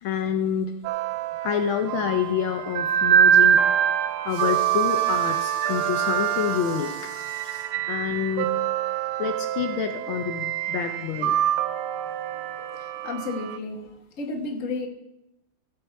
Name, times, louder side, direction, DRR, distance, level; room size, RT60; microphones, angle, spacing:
voice 1, 0.0-0.7 1.4-3.6 3.9-8.6 9.2-11.5 12.6-12.7, left 8 dB, 75° left, 5 dB, 1.5 m, -28 dB
sound 1, 0.8-13.6, right 10 dB, 85° right, 1.5 m, -25 dB
voice 2, 12.7-13.9 14.2-14.9, left 3 dB, 40° left, 3 dB, 1.7 m, -32 dB
16.0 x 7.0 x 4.6 m, 0.86 s
omnidirectional pair, 2.3 m